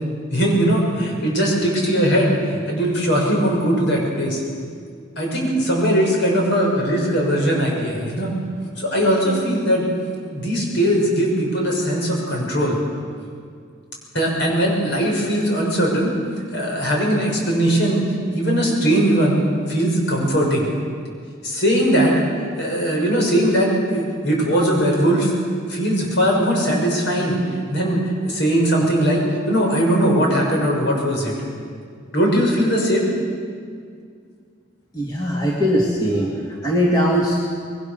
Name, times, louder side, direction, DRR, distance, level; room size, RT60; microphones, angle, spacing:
voice 1, 0.3-4.4 5.2-8.3 8.8-9.9 10.2-12.8 14.1-16.1 16.5-18.0 18.3-19.4 19.7-20.7 21.4-22.2 22.6-25.3 25.7-28.0 28.2-31.3 32.1-33.1, equal, 55° left, -1 dB, 6.7 m, -19 dB
voice 2, 34.9-36.3 36.6-37.4, equal, 20° left, -3 dB, 2.5 m, -20 dB
25.5 x 22.0 x 6.8 m, 2.1 s
head